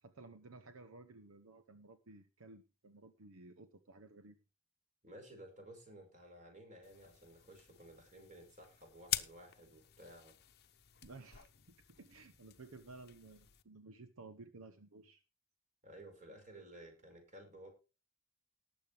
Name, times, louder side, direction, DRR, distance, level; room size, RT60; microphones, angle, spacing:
voice 1, 0.0-4.4 11.0-11.5 12.0-15.2, right 3 dB, 80° right, 10 dB, 0.9 m, -55 dB
voice 2, 5.0-10.3 15.8-17.7, right 1 dB, 40° right, 3 dB, 5.6 m, -55 dB
sound 1, 6.8-13.6, left 13 dB, 50° left, 0.8 m, -46 dB
19.0 x 7.5 x 3.4 m, 0.30 s
head